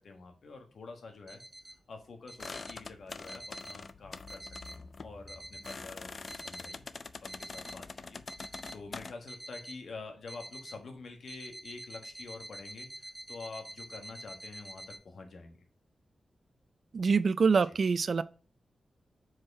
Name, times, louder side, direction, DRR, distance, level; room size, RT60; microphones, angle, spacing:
voice 1, 0.0-1.4 1.9-6.8 7.2-8.2 8.7-15.6 17.7-17.8, left 3 dB, 65° left, 1.5 m, -47 dB
sound 1, 1.3-1.7 2.3-2.7 3.3-3.8 4.3-4.8 5.3-5.8 6.3-6.8 7.3-7.8 8.3-8.8 9.3-9.8 10.3-10.8 11.3-15.0, right 1 dB, 20° right, 2.7 m, -47 dB
sound 2, 2.4-9.1, left 4 dB, 45° left, 0.4 m, -45 dB
voice 2, 16.9-18.2, right 5 dB, 55° right, 0.3 m, -25 dB
4.7 x 4.4 x 4.8 m
wide cardioid pair, 110°, 0 cm